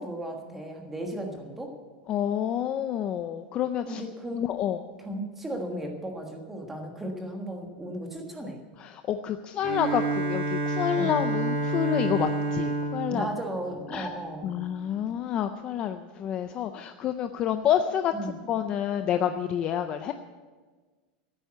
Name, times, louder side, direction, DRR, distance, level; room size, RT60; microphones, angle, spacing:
voice 1, 0.0-1.7 3.8-4.5 5.0-8.6 10.9-11.2 13.1-14.6 18.1-18.3, right 1 dB, 5° right, 2 dB, 1.5 m, -35 dB
voice 2, 2.1-4.0 4.3-4.8 8.8-13.3 13.9-14.1 14.4-18.1 18.5-20.1, left 10 dB, 20° left, 8 dB, 0.4 m, -28 dB
Bowed string instrument, 9.6-14.4, right 3 dB, 35° right, 1.9 m, -29 dB
14.0 x 8.2 x 8.9 m, 1.4 s
supercardioid pair, 180°, 5 cm